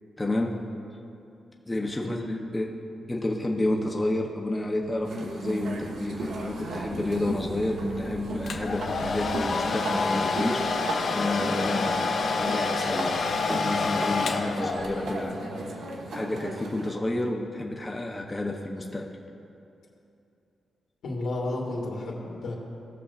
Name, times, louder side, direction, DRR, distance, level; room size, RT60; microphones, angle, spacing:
voice 1, 0.2-0.6 1.7-2.7 3.1-13.2 13.5-15.7 16.1-19.1, left 1 dB, 15° left, -1 dB, 0.7 m, -30 dB
voice 2, 2.0-2.3 21.0-22.5, left 2 dB, 90° left, -3 dB, 2.1 m, -32 dB
sound 1, 5.0-16.9, right 1 dB, 80° right, 1.3 m, -35 dB
sound 2, 5.3-9.5, right 2 dB, 60° right, 1.0 m, -45 dB
Domestic sounds home sounds, 8.5-15.1, left 4 dB, 50° left, 0.7 m, -28 dB
19.5 x 6.9 x 2.4 m, 2.7 s
wide cardioid pair, 165°, 0 cm